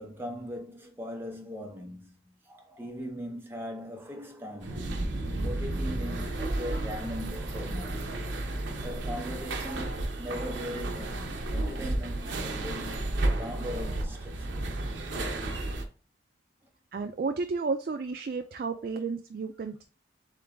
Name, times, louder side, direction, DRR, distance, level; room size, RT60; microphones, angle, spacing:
voice 1, 0.0-5.0 5.4-8.3 8.7-9.9 10.2-14.8 18.8-19.0, equal, 10° right, 0.7 m, -40 dB
sound 1, 4.6-15.8, right 2 dB, 70° right, 0.7 m, -32 dB
voice 2, 16.9-19.8, right 4 dB, 50° right, 0.3 m, -32 dB
3.8 x 3.7 x 3.4 m
head